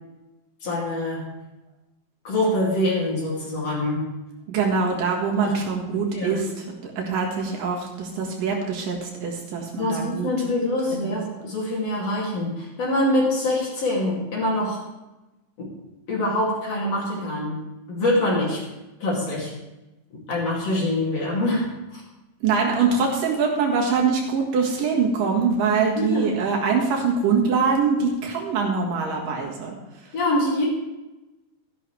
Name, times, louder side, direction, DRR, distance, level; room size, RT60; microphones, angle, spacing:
voice 1, 0.6-1.2 2.2-4.1 5.4-5.5 5.9-6.4 9.8-14.8 15.6-15.7 16.1-17.6 17.9-18.6 19.0-19.5 20.3-22.0 26.0-26.3 30.1-30.7, left 1 dB, 45° left, -4 dB, 3.6 m, -24 dB
voice 2, 4.5-6.5 6.8-10.3 10.9-11.2 22.4-29.7, right 5 dB, 70° right, -1 dB, 3.3 m, -23 dB
13.5 x 11.5 x 3.4 m, 1.0 s
omnidirectional pair, 4.1 m